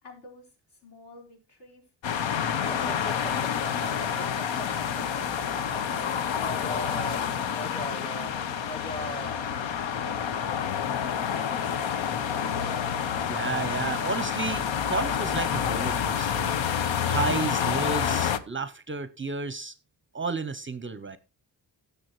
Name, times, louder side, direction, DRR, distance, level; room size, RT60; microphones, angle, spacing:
voice 1, 0.0-1.8 7.0-7.4 7.8-9.5 10.0-12.7, left 1 dB, 60° left, 4.6 m, -50 dB
sound 1, 2.0-18.4, left 8 dB, 90° left, 0.9 m, -28 dB
sound 2, 2.7-9.5, equal, 10° left, 0.7 m, -40 dB
voice 2, 13.2-16.6 17.0-19.7 20.1-21.2, right 4 dB, 30° right, 0.6 m, -32 dB
17.0 x 6.9 x 3.0 m
wide cardioid pair, 145°, 44 cm